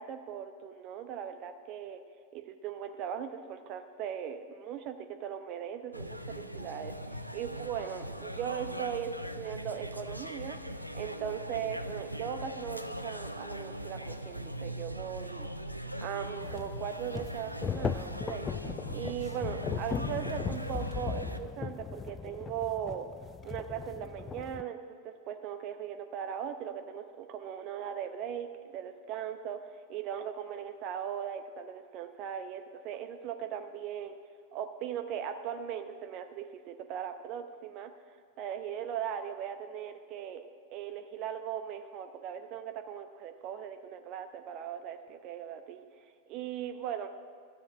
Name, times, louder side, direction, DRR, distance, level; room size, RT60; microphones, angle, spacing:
voice 1, 0.0-2.0 2.3-10.6 10.9-15.5 16.0-18.5 18.9-23.1 23.4-34.2 34.5-37.9 38.4-40.5 40.7-45.9 46.3-47.1, right 9 dB, 40° right, 8 dB, 0.7 m, -39 dB
sound 1, 5.9-21.4, equal, 90° right, 0.5 m, -40 dB
sound 2, 16.4-24.6, left 6 dB, 20° left, 0.3 m, -38 dB
13.0 x 7.6 x 7.3 m, 2.1 s
figure-of-eight pair, 90°, 0 cm